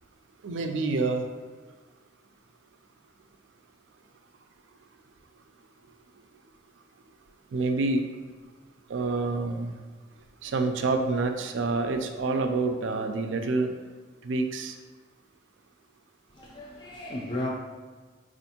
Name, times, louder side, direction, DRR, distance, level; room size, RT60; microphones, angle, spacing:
voice 1, 0.4-1.3 7.5-8.0 8.9-9.8 10.4-13.7 14.2-14.8, right 3 dB, 75° right, 6 dB, 0.4 m, -27 dB
voice 2, 16.3-17.5, left 1 dB, 25° left, -4 dB, 0.4 m, -34 dB
4.3 x 2.5 x 2.8 m, 1.5 s
head